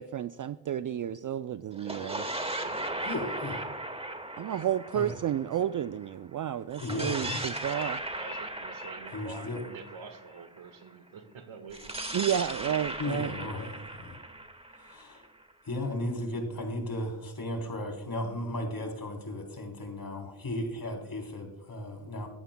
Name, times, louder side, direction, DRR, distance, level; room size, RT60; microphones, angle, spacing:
voice 1, 0.0-2.3 4.4-8.0 12.1-13.3, right 10 dB, 40° right, 13 dB, 0.4 m, -31 dB
sound 1, 1.7-6.1 6.7-10.7 11.7-15.5, right 1 dB, 10° right, 1.7 m, -37 dB
voice 2, 2.4-3.1 8.1-12.1, right 5 dB, 65° right, 9 dB, 1.6 m, -47 dB
voice 3, 3.0-3.7 4.9-5.2 6.8-7.4 9.1-9.6 13.0-14.2 14.7-15.3 15.6-22.3, left 1 dB, 45° left, 4 dB, 3.5 m, -35 dB
15.5 x 11.0 x 2.2 m, 0.91 s
supercardioid pair, 45°, 50 cm